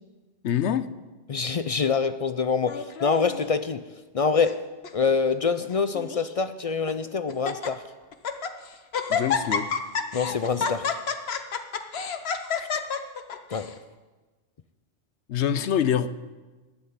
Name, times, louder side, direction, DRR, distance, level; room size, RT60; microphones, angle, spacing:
voice 1, 0.4-0.9 9.1-9.7 12.6-12.9 15.3-16.1, left 9 dB, 90° left, 13 dB, 1.0 m, -25 dB
voice 2, 1.3-3.8 4.1-4.6 4.9-7.8 10.1-10.9 13.5-13.7, left 5 dB, 50° left, 12 dB, 0.4 m, -25 dB
Laughter, 2.7-3.5 4.2-4.6 4.8-4.9 5.7-6.3 6.9-7.0 7.3-7.7 8.1-8.5 8.9-13.7, left 6 dB, 70° left, 1.2 m, -29 dB
12.0 x 7.9 x 9.4 m, 1.3 s
omnidirectional pair, 1.1 m